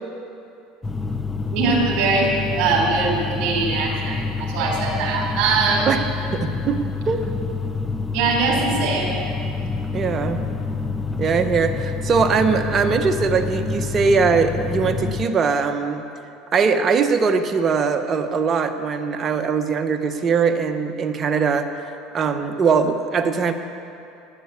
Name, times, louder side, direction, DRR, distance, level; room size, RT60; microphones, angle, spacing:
sound 1, 0.8-15.3, left 4 dB, 15° left, 0.7 m, -27 dB
voice 1, 1.5-5.9 8.1-9.1, right 4 dB, 60° right, -2 dB, 3.5 m, -22 dB
voice 2, 6.3-6.8 7.1-7.3 9.9-10.4 11.2-16.0 16.5-21.7 22.1-23.5, right 5 dB, 35° right, 7 dB, 1.0 m, -21 dB
12.0 x 9.7 x 8.3 m, 2.7 s
supercardioid pair, 100°, 0 cm